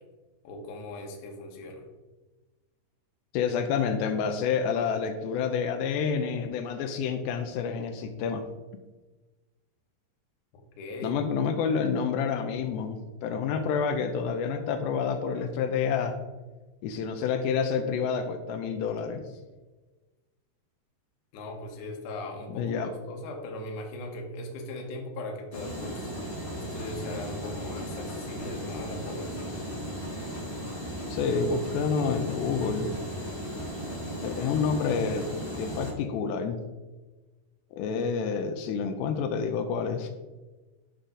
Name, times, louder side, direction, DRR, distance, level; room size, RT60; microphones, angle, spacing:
voice 1, 0.4-1.9 10.8-11.2 21.3-26.1 26.5-29.6, left 1 dB, 60° left, 1 dB, 2.3 m, -39 dB
voice 2, 3.3-8.4 11.0-16.2 16.8-19.2 22.5-22.9 31.1-32.9 34.2-35.3 35.6-36.6 37.8-40.1, left 6 dB, 85° left, 6 dB, 2.8 m, -28 dB
sound 1, 25.5-35.9, equal, 40° left, 0.9 m, -36 dB
10.5 x 6.6 x 3.8 m, 1.2 s
omnidirectional pair, 4.9 m